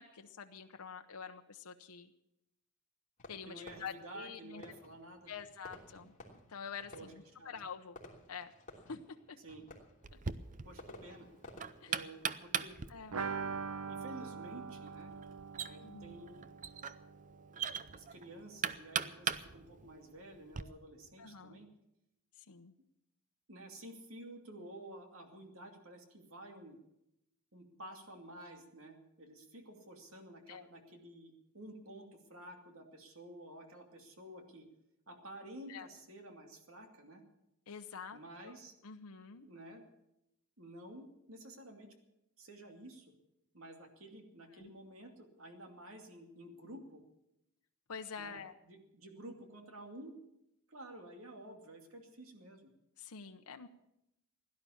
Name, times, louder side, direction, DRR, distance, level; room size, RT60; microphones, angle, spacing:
voice 1, 0.0-2.1 3.3-4.6 5.3-6.1 6.5-8.0 8.3-8.5 8.9-9.4 11.8-12.0 12.9-13.2 15.8-16.2 21.2-21.6 22.4-22.7 30.5-30.6 35.7-35.9 37.7-38.5 38.8-39.5 44.5-44.7 47.9-48.5 53.0-53.7, left 6 dB, 90° left, 6 dB, 0.8 m, -47 dB
Fireworks, 3.2-13.8, left 1 dB, 35° left, 3.2 m, -57 dB
voice 2, 3.5-5.3 6.9-7.1 7.4-7.5 9.4-9.7 10.6-11.3 11.9-12.8 13.9-15.1 15.7-16.5 17.9-21.7 23.5-26.8 27.5-34.7 35.1-37.2 38.1-38.7 39.4-39.8 40.6-41.9 42.4-43.1 43.5-47.0 48.2-50.2 50.7-52.7, right 1 dB, 70° right, 4 dB, 2.5 m, -51 dB
Knock, 10.0-20.6, right 7 dB, 35° right, 0.6 m, -41 dB
sound 1, 13.1-18.7 19.0-19.1 19.4-19.5, right 5 dB, 85° right, 0.9 m, -43 dB
16.5 x 11.5 x 7.1 m, 0.86 s
head